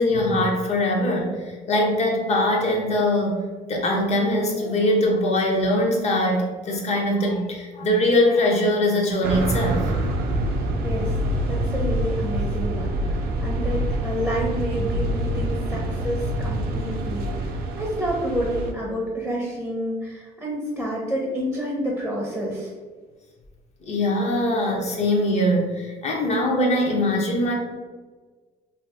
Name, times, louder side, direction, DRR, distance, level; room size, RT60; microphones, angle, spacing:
voice 1, 0.0-3.4 3.7-9.8 23.8-27.5, left 1 dB, 40° left, 1 dB, 0.8 m, -22 dB
sound 1, 9.2-18.7, right 1 dB, 65° right, 0.5 m, -26 dB
voice 2, 10.5-11.2 11.5-22.7, right 1 dB, ahead, -4 dB, 0.6 m, -29 dB
2.7 x 2.4 x 3.4 m, 1.4 s
cardioid pair, 110°, 17 cm